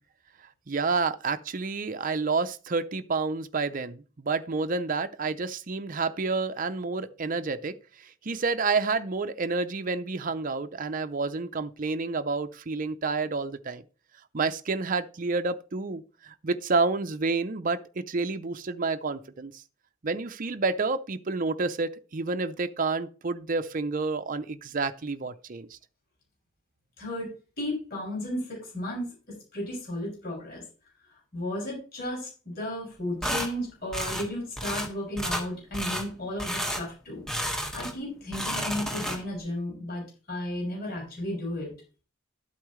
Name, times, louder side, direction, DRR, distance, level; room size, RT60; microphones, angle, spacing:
voice 1, 0.7-13.8 14.3-19.5 20.0-25.7, right 4 dB, 45° right, 0.6 m, -29 dB
voice 2, 27.0-29.1 29.5-30.6 31.3-37.3 37.7-41.7, left 1 dB, 50° left, 6.5 m, -34 dB
sound 1, 33.2-33.5 33.9-34.3 34.6-34.9 35.2-35.5 35.7-36.1 36.4-36.8 37.3-38.0 38.3-39.4, equal, 5° left, 1.6 m, -31 dB
12.0 x 8.4 x 3.2 m
head